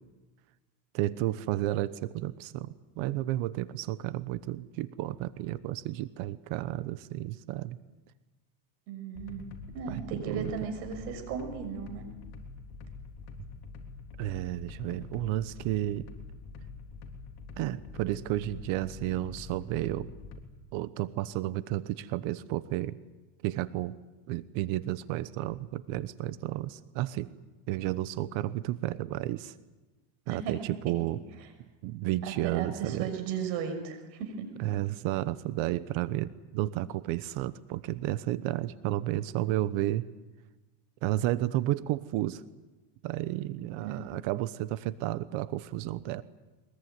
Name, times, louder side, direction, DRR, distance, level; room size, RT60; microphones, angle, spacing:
voice 1, 0.9-7.8 9.9-10.5 14.2-16.1 17.6-20.1 20.7-23.0 23.4-24.0 24.3-27.3 27.7-29.5 30.3-31.2 31.8-33.1 34.6-40.1 41.0-42.4 43.0-46.2, right 15 dB, 65° right, 16 dB, 1.1 m, -32 dB
voice 2, 8.9-9.5 9.7-12.0 30.3-30.5 30.9-31.0 32.2-34.5 43.8-44.0, right 7 dB, 90° right, 6 dB, 6.6 m, -36 dB
sound 1, 9.1-20.4, left 4 dB, 50° left, 3.6 m, -45 dB
23.0 x 21.5 x 9.5 m, 1.1 s
cardioid pair, 140°, 50 cm